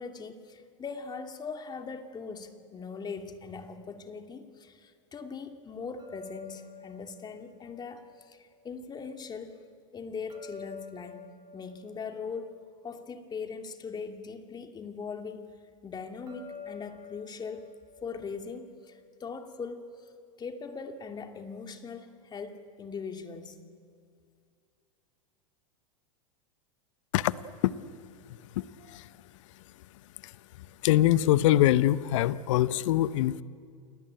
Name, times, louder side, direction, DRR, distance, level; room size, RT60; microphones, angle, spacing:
voice 1, 0.0-9.6 9.9-15.5 15.8-17.7 18.0-20.1 20.4-23.6, left 5 dB, 25° left, 5 dB, 2.6 m, -40 dB
sound 1, 6.0-9.1 10.3-13.8 16.3-19.4, left 5 dB, 25° right, 4.3 m, -50 dB
voice 2, 28.6-29.1 30.2-30.3 30.8-33.4, left 14 dB, 65° left, 17 dB, 0.9 m, -24 dB
29.5 x 20.0 x 9.0 m, 2.3 s
hypercardioid pair, 95°, 17 cm